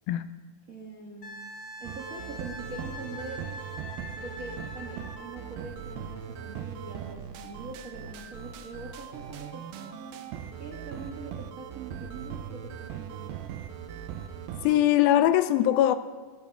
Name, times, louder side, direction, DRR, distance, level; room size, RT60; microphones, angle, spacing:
voice 1, 0.7-1.3 1.8-3.4 4.1-10.2 10.6-13.4, right 3 dB, 75° right, 0.7 m, -43 dB
Wind instrument woodwind instrument, 1.2-5.5 8.1-8.3, left 1 dB, 55° left, 0.9 m, -43 dB
sound 1, 1.8-14.8, right 8 dB, 90° right, 2.7 m, -40 dB
voice 2, 14.6-16.0, left 12 dB, 85° left, 2.3 m, -21 dB
17.0 x 15.5 x 3.6 m
omnidirectional pair, 4.3 m